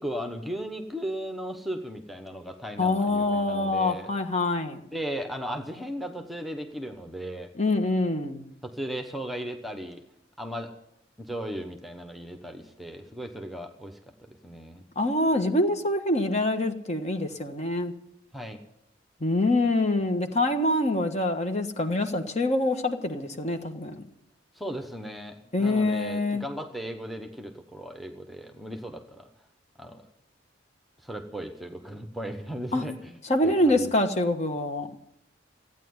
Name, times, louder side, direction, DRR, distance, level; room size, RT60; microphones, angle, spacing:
voice 1, 0.0-4.1 4.9-7.5 8.6-10.0 10.4-10.7 11.2-14.8 18.3-18.6 24.6-29.3 29.8-30.0 31.0-33.2 33.4-33.9, equal, ahead, 5 dB, 1.1 m, -36 dB
voice 2, 2.8-4.8 7.5-8.4 14.9-17.9 19.2-24.0 25.5-26.4 32.7-32.8 33.2-35.0, left 2 dB, 35° left, 6 dB, 1.4 m, -25 dB
15.0 x 9.4 x 9.5 m, 0.78 s
head